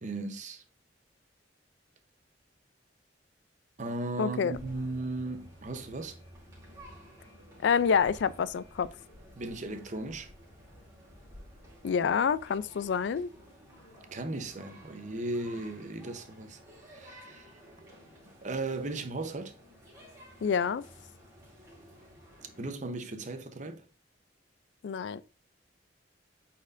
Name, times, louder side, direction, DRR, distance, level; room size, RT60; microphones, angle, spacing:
voice 1, 0.0-0.6 3.8-6.2 9.3-10.3 14.1-16.6 16.9-17.5 18.4-19.5 22.6-23.8, right 2 dB, 40° right, 0.7 m, -36 dB
voice 2, 4.2-4.6 7.6-8.9 11.8-13.3 20.4-20.9 24.8-25.2, left 6 dB, 70° left, 0.3 m, -27 dB
sound 1, 4.5-22.7, equal, 20° right, 2.5 m, -53 dB
8.6 x 4.3 x 2.5 m
head